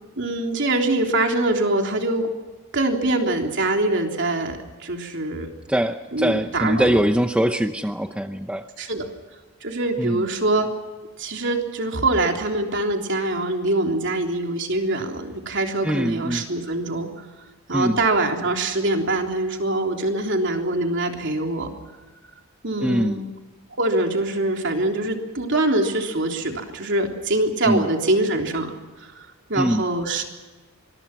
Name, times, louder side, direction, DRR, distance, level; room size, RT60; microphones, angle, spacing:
voice 1, 0.2-2.3 2.7-5.5 6.1-7.0 8.8-9.1 9.6-10.7 11.2-17.3 17.7-21.7 22.6-23.2 23.8-28.7 29.0-30.2, right 2 dB, 55° right, 3 dB, 3.5 m, -24 dB
voice 2, 5.7-8.7 10.0-10.3 15.8-16.4 17.7-18.0 22.8-23.2 27.7-27.9 29.6-29.8, equal, 5° right, 7 dB, 0.7 m, -22 dB
25.5 x 22.5 x 6.0 m, 1.3 s
head